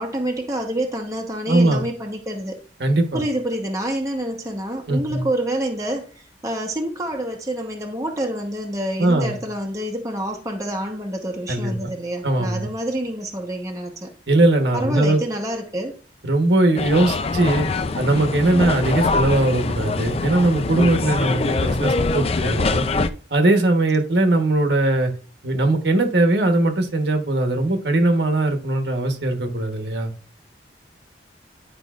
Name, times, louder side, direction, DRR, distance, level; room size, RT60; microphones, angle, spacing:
voice 1, 0.0-2.6 3.1-14.1 14.7-16.0, right 1 dB, 20° right, 1.0 m, -27 dB
voice 2, 1.5-1.8 2.8-3.2 4.9-5.2 9.0-9.4 11.5-11.9 12.2-12.7 14.3-15.2 16.2-17.7 18.0-22.9 23.3-25.1 25.4-30.1, right 2 dB, 65° right, 1.1 m, -20 dB
sound 1, 16.8-23.1, left 3 dB, 35° left, 0.4 m, -23 dB
10.5 x 5.2 x 2.4 m
head